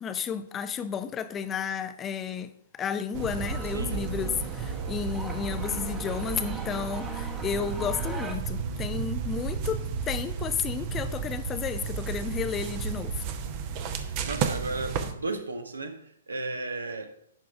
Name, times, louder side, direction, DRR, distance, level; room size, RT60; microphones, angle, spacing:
voice 1, 0.0-13.3, left 7 dB, 20° left, 0.5 m, -32 dB
sound 1, 3.1-8.4, right 2 dB, 10° right, 1.0 m, -42 dB
sound 2, 3.1-15.1, right 6 dB, 35° right, 0.8 m, -33 dB
voice 2, 3.7-4.0 13.4-13.9 14.2-16.0 16.3-17.1, right 2 dB, 75° right, 1.0 m, -35 dB
10.5 x 3.7 x 5.0 m
figure-of-eight pair, 115°, 0 cm